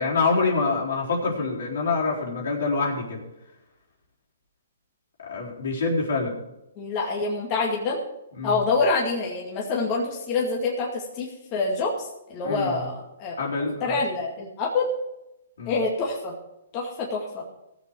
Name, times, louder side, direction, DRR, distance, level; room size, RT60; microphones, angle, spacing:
voice 1, 0.0-3.2 5.2-6.3 8.4-8.6 12.4-12.9 13.4-14.0 15.6-15.8, left 3 dB, 70° left, -2 dB, 4.0 m, -26 dB
voice 2, 6.8-8.0 8.4-13.4 13.8-14.9 15.7-16.3 16.7-17.4, left 3 dB, 30° left, -3 dB, 2.3 m, -26 dB
16.5 x 7.4 x 4.8 m, 0.89 s
hypercardioid pair, 145°, 0 cm